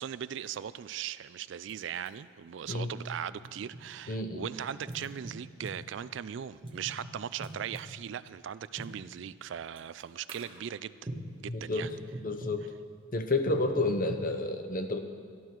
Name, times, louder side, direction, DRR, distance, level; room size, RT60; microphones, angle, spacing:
voice 1, 0.0-11.0 11.4-11.9, right 9 dB, 65° right, 16 dB, 0.3 m, -39 dB
sound 1, 1.7-1.8 2.1-2.2 3.0-4.2 4.9-5.8 6.6-8.0 8.8-9.0 9.8-10.0 10.3-10.6 11.1-11.4 11.8-12.6 13.5-14.3, right 1 dB, 25° right, 1.3 m, -42 dB
voice 2, 4.1-4.5 11.5-11.9 12.2-12.7 13.1-15.0, left 2 dB, 45° left, 7 dB, 0.8 m, -30 dB
12.5 x 11.5 x 4.5 m, 2.1 s
head